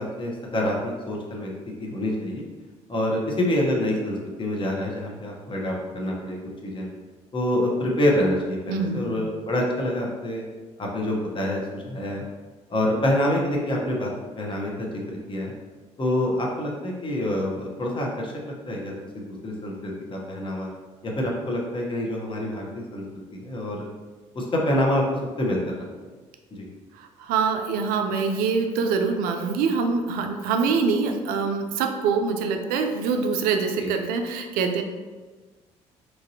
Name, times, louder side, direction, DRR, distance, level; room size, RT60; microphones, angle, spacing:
voice 1, 0.0-1.5 1.8-2.4 2.9-6.9 7.3-10.4 10.8-12.2 12.7-14.1 14.4-15.5 16.0-18.3 18.7-20.7 21.0-23.0 23.4-23.8 24.3-25.0 25.4-25.8 26.5-26.7 33.8-33.9, left 1 dB, 35° left, -1 dB, 0.8 m, -26 dB
voice 2, 8.7-9.2 26.9-34.8, right 5 dB, 70° right, 5 dB, 0.4 m, -25 dB
3.0 x 2.5 x 2.7 m, 1.3 s
hypercardioid pair, 55°, 15 cm